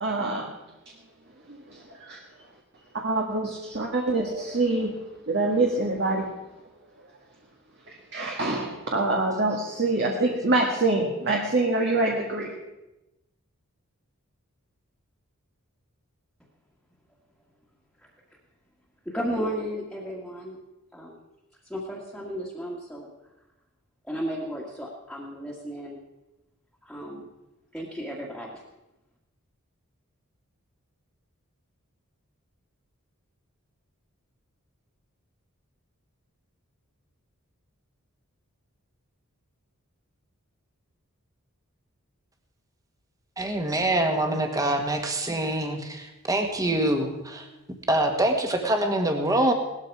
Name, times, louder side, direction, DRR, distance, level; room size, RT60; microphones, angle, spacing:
voice 1, 0.0-0.5 1.5-2.2 2.9-4.9 5.3-6.3 7.9-12.5, right 2 dB, 50° right, 0 dB, 1.8 m, -25 dB
voice 2, 19.1-20.6 20.9-21.2 21.7-23.1 24.0-26.0 26.8-27.2 27.7-28.6, equal, ahead, -4 dB, 1.9 m, -34 dB
voice 3, 43.4-47.5 47.9-49.5, right 1 dB, 15° right, 3 dB, 1.7 m, -25 dB
18.0 x 13.5 x 4.8 m, 0.97 s
head